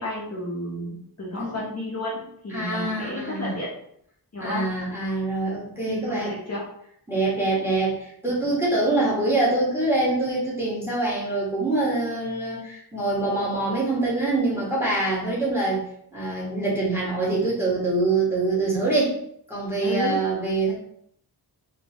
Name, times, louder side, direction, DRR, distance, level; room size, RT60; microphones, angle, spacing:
voice 1, 0.0-3.7 4.3-4.7 5.9-6.7 8.4-8.6 19.8-20.2, left 1 dB, 40° left, -5 dB, 0.8 m, -32 dB
voice 2, 2.5-3.5 4.4-6.3 7.1-15.9 16.1-19.2 19.5-20.7, right 2 dB, 5° right, -6 dB, 1.4 m, -24 dB
3.9 x 3.0 x 2.9 m, 0.69 s
wide cardioid pair, 145°, 41 cm